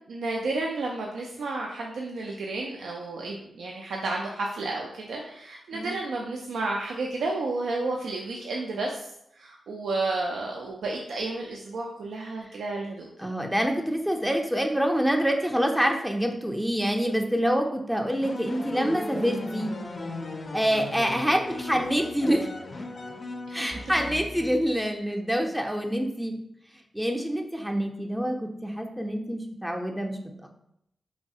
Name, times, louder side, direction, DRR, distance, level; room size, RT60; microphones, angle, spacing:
voice 1, 0.1-9.1 9.4-13.1, right 2 dB, 85° right, -1 dB, 0.3 m, -31 dB
voice 2, 13.2-19.7 20.5-22.5 23.5-26.3 26.9-30.5, equal, 5° right, 2 dB, 0.5 m, -26 dB
sound 1, 18.2-24.9, left 2 dB, 55° left, 0.4 m, -37 dB
3.1 x 2.3 x 2.7 m, 0.77 s
cardioid pair, 55°, 0 cm